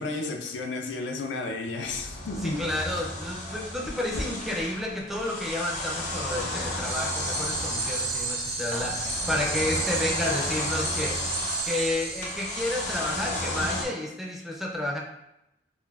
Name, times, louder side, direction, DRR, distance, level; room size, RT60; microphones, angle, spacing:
voice 1, 0.0-2.7, left 3 dB, 85° left, 3 dB, 0.4 m, -32 dB
sound 1, 1.8-13.8, left 1 dB, 45° left, 0.7 m, -34 dB
voice 2, 2.4-11.2 11.6-15.0, left 1 dB, ahead, -2 dB, 0.3 m, -31 dB
sound 2, 6.8-13.2, right 3 dB, 60° right, 0.6 m, -32 dB
2.3 x 2.2 x 3.2 m, 0.85 s
head